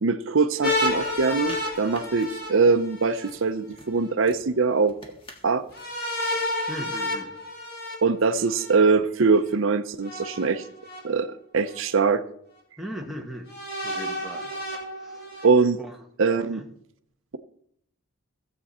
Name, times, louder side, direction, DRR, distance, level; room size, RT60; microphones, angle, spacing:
voice 1, 0.0-4.9 5.4-5.6 8.0-10.6 11.0-11.3 11.5-12.2 15.4-15.8 16.2-16.6, right 4 dB, 65° right, 0.6 m, -22 dB
sound 1, 0.6-3.3 5.7-8.7 10.0-11.0 11.7-11.8 13.5-15.5, left 1 dB, 45° left, 3.3 m, -30 dB
sound 2, 1.0-2.5 3.1-5.9, left 1 dB, 25° left, 1.5 m, -47 dB
voice 2, 6.7-7.3 12.8-13.5 13.8-14.5 15.0-15.4 15.8-16.0 16.4-16.7, equal, ahead, 1.1 m, -38 dB
15.5 x 7.7 x 4.2 m
head